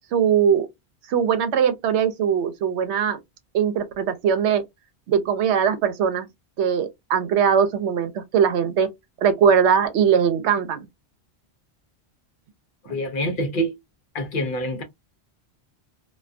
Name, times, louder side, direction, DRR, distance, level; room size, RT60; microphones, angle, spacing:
voice 1, 0.1-0.7 1.1-3.2 3.5-4.6 5.1-6.3 6.6-8.9 9.2-10.9, right 7 dB, 85° right, 0.9 m, -20 dB
voice 2, 12.9-13.7 14.1-14.8, equal, 60° left, 0.6 m, -26 dB
2.2 x 2.2 x 2.4 m
omnidirectional pair, 1.1 m